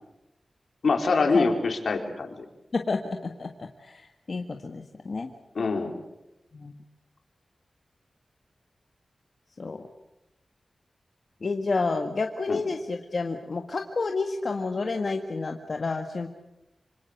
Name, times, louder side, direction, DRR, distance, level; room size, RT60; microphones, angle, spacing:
voice 1, 0.8-2.4 5.6-5.9 12.5-12.6, left 4 dB, 80° left, 4 dB, 4.0 m, -24 dB
voice 2, 2.7-4.0 4.3-5.3 6.5-6.8 9.6-9.8 11.4-16.3, left 3 dB, 60° left, 4 dB, 1.7 m, -30 dB
26.5 x 26.0 x 6.6 m, 0.90 s
wide cardioid pair, 85°, 0 cm